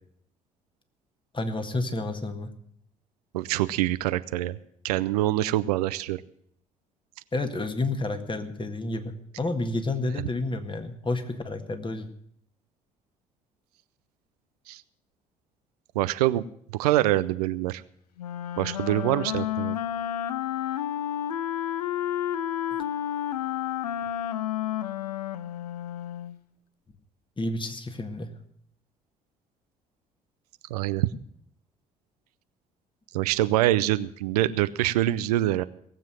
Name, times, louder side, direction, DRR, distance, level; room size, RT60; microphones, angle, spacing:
voice 1, 1.3-2.5 7.3-12.1 27.4-28.3, left 2 dB, 25° left, 8 dB, 1.8 m, -30 dB
voice 2, 3.3-4.6 4.8-6.2 14.7-14.8 16.0-16.5 16.7-17.8 18.6-19.8 30.7-31.1 33.1-35.6, right 15 dB, 80° right, 14 dB, 0.5 m, -25 dB
Wind instrument woodwind instrument, 18.2-26.4, left 11 dB, 85° left, 0.5 m, -31 dB
18.0 x 7.5 x 7.5 m, 0.67 s
figure-of-eight pair, 50°, 20 cm